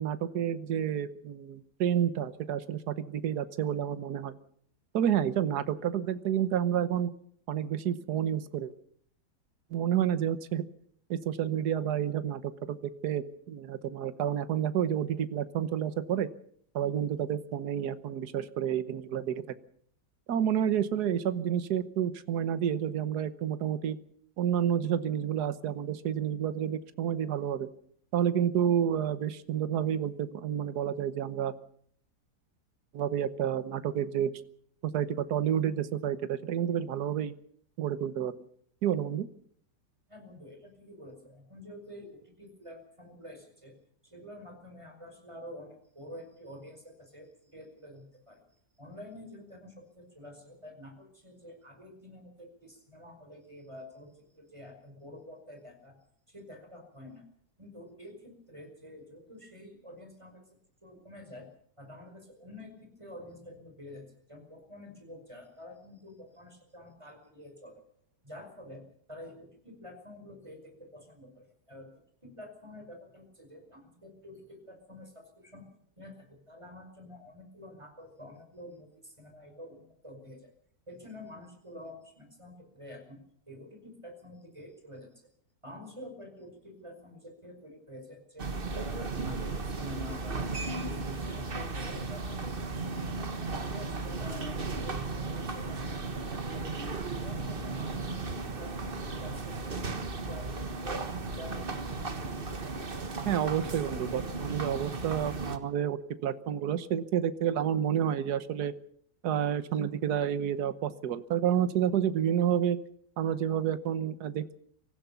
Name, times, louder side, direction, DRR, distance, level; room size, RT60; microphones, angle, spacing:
voice 1, 0.0-4.3 4.9-7.1 7.5-8.7 9.7-10.6 11.1-12.4 12.7-16.3 16.7-19.4 20.3-24.0 24.4-27.7 28.1-31.5 32.9-34.3 34.9-37.3 37.8-38.3 38.8-39.3 103.2-108.7 109.2-112.8 113.2-114.5, right 9 dB, 75° right, 12 dB, 1.6 m, -29 dB
voice 2, 40.1-43.8 44.0-48.4 48.8-56.0 56.3-57.2 57.6-60.4 60.8-61.5 61.8-67.8 68.2-75.7 76.0-80.5 80.9-83.2 83.5-85.3 85.6-90.5 90.8-92.9 93.2-96.0 96.3-101.1 101.3-101.7, left 1 dB, 15° right, 5 dB, 5.3 m, -48 dB
sound 1, 88.4-105.6, right 3 dB, 35° right, 1.6 m, -35 dB
25.0 x 15.5 x 7.0 m, 0.64 s
omnidirectional pair, 1.8 m